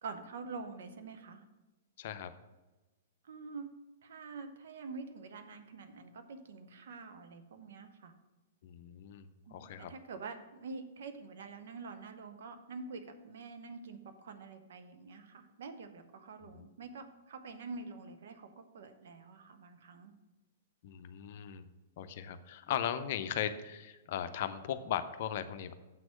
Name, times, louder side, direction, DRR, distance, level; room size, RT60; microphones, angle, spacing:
voice 1, 0.0-1.4 3.3-3.7 4.0-8.1 9.5-20.1, right 4 dB, 55° right, 7 dB, 0.8 m, -46 dB
voice 2, 2.0-2.3 8.6-9.9 16.5-16.6 20.8-21.7 22.0-25.7, left 9 dB, 45° left, 10 dB, 0.6 m, -38 dB
7.6 x 6.1 x 6.1 m, 1.1 s
figure-of-eight pair, 110°, 0 cm